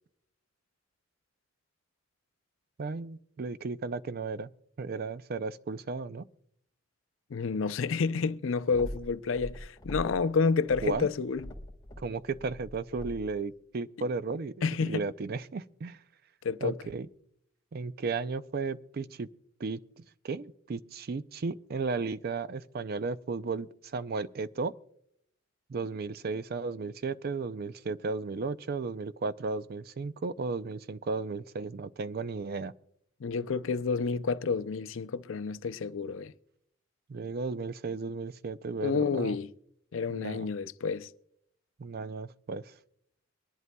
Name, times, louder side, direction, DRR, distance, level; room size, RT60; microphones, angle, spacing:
voice 1, 2.8-4.5 4.8-6.3 10.8-11.1 12.0-16.0 16.6-17.1 17.7-19.3 19.6-24.7 25.7-32.7 37.1-39.4 40.1-40.5 41.8-42.7, right 4 dB, 50° right, 0.4 m, -34 dB
voice 2, 7.3-11.5 14.6-15.0 16.4-16.8 33.2-36.3 38.8-39.5 39.9-41.1, left 5 dB, 75° left, 0.5 m, -29 dB
sound 1, 8.7-10.3 10.6-13.4, left 1 dB, 20° left, 1.6 m, -43 dB
23.5 x 11.0 x 2.2 m
head